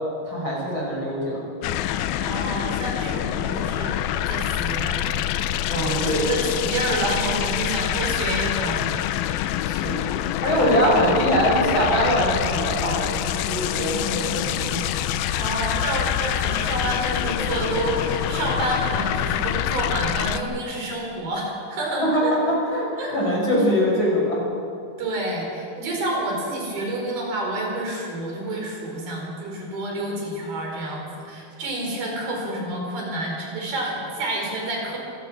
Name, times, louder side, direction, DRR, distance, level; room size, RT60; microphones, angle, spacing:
voice 1, 0.2-1.4 5.7-6.3 9.6-10.1 10.4-14.8 22.0-24.4, equal, 30° left, -4 dB, 7.1 m, -23 dB
sound 1, 1.6-20.4, left 11 dB, 85° left, 2.6 m, -26 dB
voice 2, 2.2-5.0 5.7-8.8 10.5-10.6 15.3-22.3 23.0-23.1 25.0-35.0, right 1 dB, 85° right, -1 dB, 6.5 m, -29 dB
26.0 x 17.0 x 6.2 m, 2.4 s
omnidirectional pair, 4.2 m